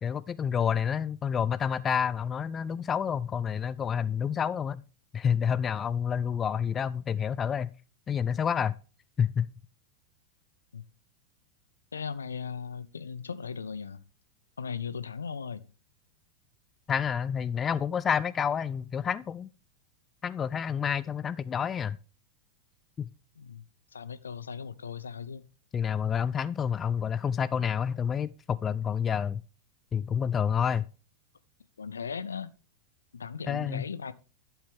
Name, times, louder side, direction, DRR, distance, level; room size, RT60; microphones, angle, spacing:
voice 1, 0.0-4.8 5.1-7.7 8.1-8.7 9.2-9.5 16.9-19.5 20.2-22.0 23.0-23.1 25.7-29.4 29.9-30.9 33.5-33.8, left 7 dB, 20° left, 0.4 m, -29 dB
voice 2, 11.9-14.0 14.6-15.7 23.4-23.6 23.9-25.4 31.8-32.5 33.1-34.1, left 6 dB, 70° left, 0.6 m, -37 dB
11.5 x 7.3 x 3.5 m
figure-of-eight pair, 90°, 0 cm